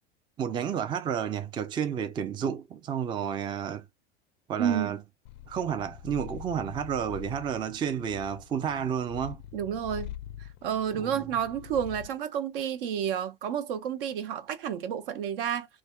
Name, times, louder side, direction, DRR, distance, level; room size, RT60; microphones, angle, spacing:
voice 1, 0.4-3.8 4.5-5.0 5.5-9.4 11.0-11.3, right 8 dB, 15° right, 0.4 m, -31 dB
voice 2, 4.6-4.9 9.5-10.1 10.4-15.7, right 9 dB, 60° right, 0.6 m, -30 dB
Purr, 5.3-12.2, left 13 dB, 45° left, 0.4 m, -44 dB
3.3 x 2.2 x 2.3 m
figure-of-eight pair, 80°, 32 cm